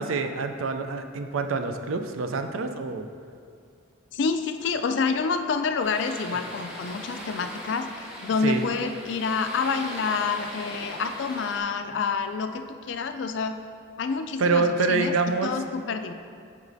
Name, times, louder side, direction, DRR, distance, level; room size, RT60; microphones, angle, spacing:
voice 1, 0.0-3.1 8.4-8.6 14.4-15.6, right 4 dB, 80° right, 7 dB, 0.4 m, -26 dB
voice 2, 4.1-13.6 14.0-15.1 15.4-16.1, left 5 dB, 60° left, 7 dB, 0.3 m, -28 dB
sound 1, 5.8-11.6, equal, 5° right, 1.0 m, -40 dB
8.0 x 5.2 x 2.6 m, 2.3 s
head